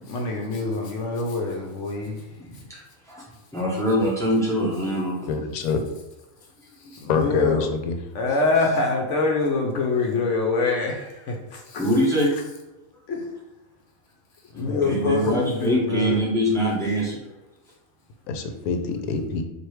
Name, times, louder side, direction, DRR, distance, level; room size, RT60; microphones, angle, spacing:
voice 1, 0.1-2.3 6.8-7.7 8.1-11.9 13.1-13.3 14.5-16.2, left 3 dB, 65° left, 1 dB, 0.9 m, -25 dB
voice 2, 3.5-5.3 11.8-12.3 14.8-17.2, equal, 5° left, -4 dB, 0.6 m, -23 dB
voice 3, 5.3-5.8 7.1-8.0 14.6-15.2 18.3-19.4, left 5 dB, 85° left, 6 dB, 1.0 m, -26 dB
4.5 x 2.6 x 3.2 m, 1.0 s
omnidirectional pair, 1.5 m